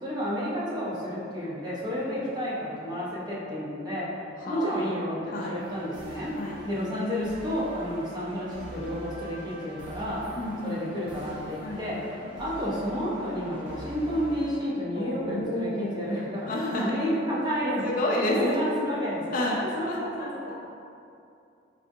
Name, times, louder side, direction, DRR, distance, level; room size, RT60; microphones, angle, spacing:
voice 1, 0.0-4.1 4.5-6.3 6.6-10.2 10.6-12.0 12.4-17.8 18.3-19.5 19.7-20.4, equal, 20° right, -7 dB, 0.6 m, -31 dB
voice 2, 4.5-4.9 5.3-5.6 6.4-6.6 10.4-10.8 11.6-11.8 14.9-16.1 16.5-17.0 17.8-18.6 19.3-19.6 19.9-20.5, left 1 dB, 45° left, -2 dB, 0.4 m, -30 dB
sound 1, 5.6-14.5, equal, 90° right, 0.8 m, -44 dB
3.5 x 2.5 x 2.6 m, 2.5 s
head